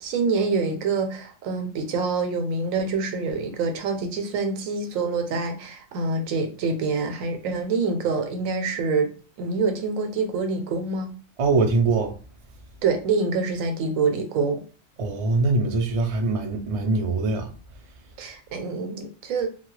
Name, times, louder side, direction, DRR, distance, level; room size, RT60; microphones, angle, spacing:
voice 1, 0.0-9.1 9.4-11.1 12.8-14.6 18.2-19.6, right 4 dB, 90° right, 1.0 m, -26 dB
voice 2, 11.4-12.1 15.0-17.5, right 3 dB, 60° right, 0.3 m, -23 dB
2.8 x 2.3 x 3.0 m
omnidirectional pair, 1.4 m